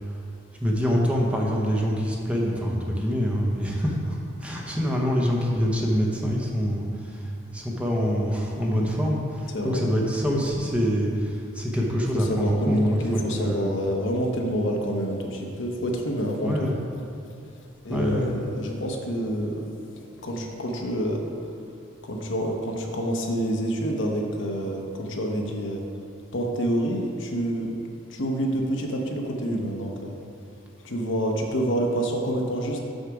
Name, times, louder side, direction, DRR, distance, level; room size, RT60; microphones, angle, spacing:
voice 1, 0.6-13.7 16.4-16.8 17.9-18.3, equal, 5° right, -2 dB, 0.8 m, -25 dB
voice 2, 12.1-16.7 17.8-21.3 22.0-25.8 26.3-27.7 28.1-30.2 30.8-32.8, equal, 65° left, 1 dB, 1.0 m, -27 dB
6.5 x 6.5 x 4.8 m, 2.5 s
head